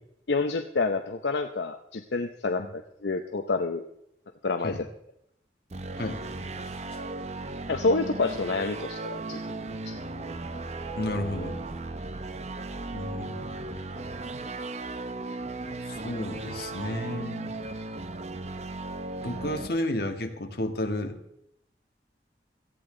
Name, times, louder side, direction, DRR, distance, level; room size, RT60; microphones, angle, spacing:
voice 1, 0.3-3.8 4.4-4.7 7.7-9.6 9.9-10.0, left 3 dB, 80° left, 6 dB, 0.7 m, -28 dB
sound 1, 5.7-19.7, right 2 dB, 40° right, 0.7 m, -36 dB
voice 2, 10.9-11.6 12.9-13.5 15.9-17.5 19.2-21.2, left 1 dB, 60° left, 5 dB, 1.5 m, -32 dB
17.5 x 14.0 x 3.8 m, 0.79 s
head